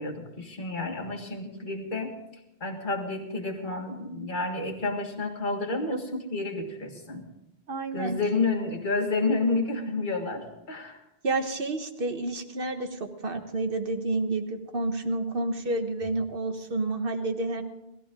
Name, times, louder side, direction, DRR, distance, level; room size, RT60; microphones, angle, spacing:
voice 1, 0.0-2.1 2.6-7.3 7.9-11.0, left 3 dB, 50° left, 2 dB, 2.1 m, -30 dB
voice 2, 7.7-8.2 11.2-17.6, right 2 dB, 55° right, 6 dB, 1.5 m, -30 dB
19.5 x 14.5 x 3.7 m, 0.87 s
omnidirectional pair, 1.1 m